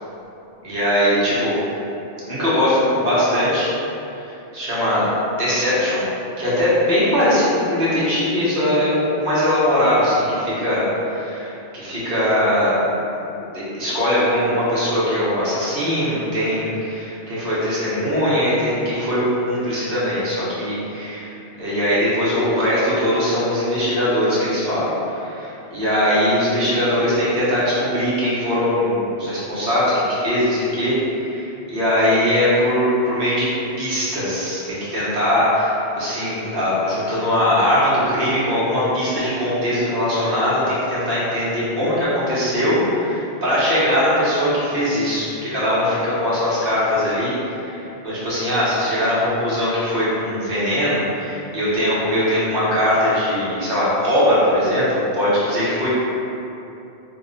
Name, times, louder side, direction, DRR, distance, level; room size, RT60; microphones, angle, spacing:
voice 1, 0.6-1.5 2.2-3.7 4.3-6.0 6.4-12.8 13.5-21.3 21.6-33.5 33.8-54.9 55.1-55.9, left 1 dB, 55° right, -9 dB, 1.0 m, -20 dB
2.8 x 2.1 x 3.7 m, 2.9 s
omnidirectional pair, 1.2 m